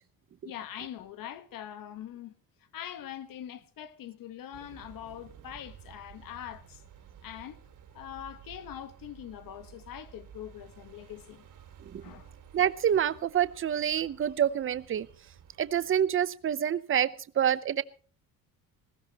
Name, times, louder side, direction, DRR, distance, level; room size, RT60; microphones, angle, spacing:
voice 1, 0.4-2.3 2.7-6.8 7.2-7.6 7.9-11.5 12.0-12.3, left 10 dB, 70° left, 1.3 m, -43 dB
sound 1, 4.5-16.0, right 8 dB, 60° right, 2.9 m, -53 dB
voice 2, 12.5-15.1 15.6-17.8, right 9 dB, 35° right, 0.7 m, -27 dB
20.5 x 16.0 x 2.9 m
cardioid pair, 125°, 35 cm